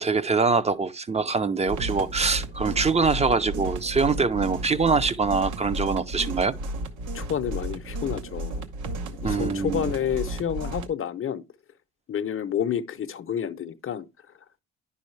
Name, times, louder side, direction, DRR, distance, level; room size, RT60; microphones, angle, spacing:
voice 1, 0.0-6.5 9.2-9.9, right 4 dB, 20° right, 0.5 m, -24 dB
sound 1, 1.6-10.9, right 1 dB, 80° right, 1.0 m, -33 dB
voice 2, 7.1-8.7 9.2-11.4 12.1-14.1, left 9 dB, 45° left, 0.7 m, -29 dB
10.0 x 5.5 x 3.1 m
cardioid pair, 90°, 30 cm